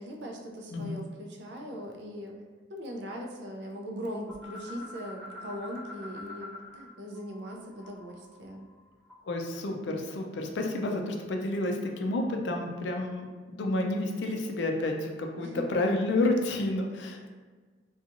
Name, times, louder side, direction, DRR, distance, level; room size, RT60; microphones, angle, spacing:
voice 1, 0.0-2.4 2.7-8.7 15.4-15.6, equal, 65° right, 1 dB, 0.4 m, -40 dB
sound 1, 4.3-6.9 7.1-9.4, left 2 dB, ahead, 0.5 m, -46 dB
voice 2, 9.3-17.3, left 2 dB, 70° left, 2 dB, 0.4 m, -30 dB
2.8 x 2.3 x 2.5 m, 1.4 s
head